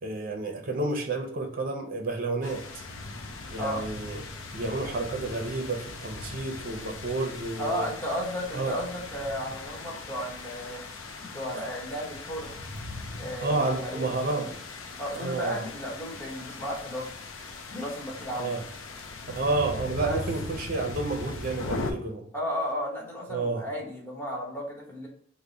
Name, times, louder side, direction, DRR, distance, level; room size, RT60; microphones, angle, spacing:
voice 1, 0.0-2.6 3.5-4.2 4.5-7.9 8.5-8.8 13.4-14.5 15.2-15.6 18.4-18.6 19.3-22.2 23.3-23.6, right 2 dB, 45° right, 3 dB, 0.6 m, -30 dB
sound 1, 2.4-21.9, left 3 dB, 85° left, 0.6 m, -39 dB
voice 2, 7.6-10.8 11.2-12.5 13.2-14.5 15.0-17.1 17.7-18.5 20.0-20.2 22.3-25.1, equal, 10° left, -3 dB, 1.0 m, -34 dB
3.5 x 2.1 x 3.8 m, 0.63 s
head